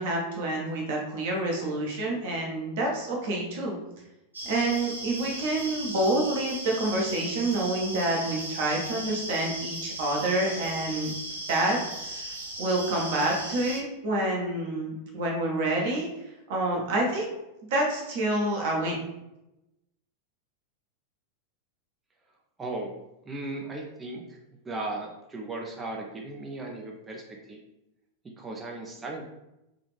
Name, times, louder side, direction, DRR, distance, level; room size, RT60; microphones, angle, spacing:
voice 1, 0.0-3.8 4.4-11.1 11.5-11.8 12.2-16.1 16.5-17.4 17.7-19.0, right 2 dB, 55° right, -1 dB, 1.2 m, -28 dB
sound 1, 4.3-13.8, right 1 dB, 80° right, 0.7 m, -37 dB
voice 2, 22.6-22.9 23.2-24.4 24.6-27.6 28.2-29.2, right 2 dB, 15° right, 0 dB, 0.6 m, -36 dB
3.9 x 2.8 x 3.3 m, 0.90 s
figure-of-eight pair, 90°, 0 cm